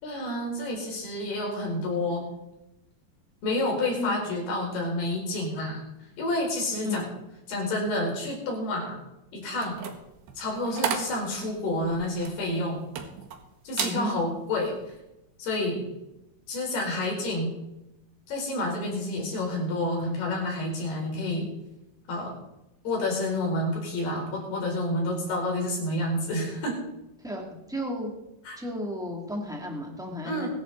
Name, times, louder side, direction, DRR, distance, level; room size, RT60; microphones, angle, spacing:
voice 1, 0.0-2.3 3.4-5.8 6.2-7.1 7.5-9.0 9.3-9.8 10.4-12.9 13.6-14.7 15.4-15.9 16.5-17.5 18.3-21.5 22.1-22.3 22.8-26.8 28.5-28.6 30.2-30.5, left 1 dB, 90° left, -1 dB, 6.6 m, -29 dB
voice 2, 4.0-4.3 6.8-7.1 13.8-14.2 27.2-27.4 27.7-28.1 28.6-30.5, left 1 dB, ahead, 0 dB, 2.2 m, -33 dB
sound 1, 9.5-13.4 13.7-14.0 14.5-14.8, right 7 dB, 85° right, 3.6 m, -33 dB
22.5 x 11.0 x 4.2 m, 0.92 s
omnidirectional pair, 4.4 m